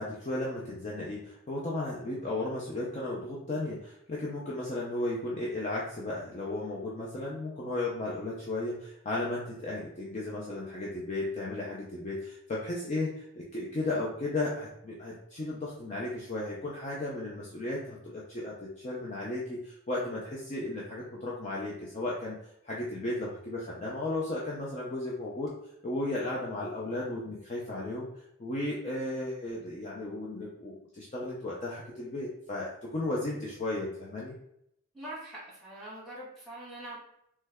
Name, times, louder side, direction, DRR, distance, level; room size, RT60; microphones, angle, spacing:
voice 1, 0.0-22.4 22.6-25.5 25.8-28.1 28.4-34.3, left 2 dB, 30° left, -5 dB, 0.4 m, -35 dB
voice 2, 34.9-37.0, right 1 dB, ahead, -9 dB, 1.2 m, -43 dB
3.2 x 2.2 x 3.4 m, 0.76 s
head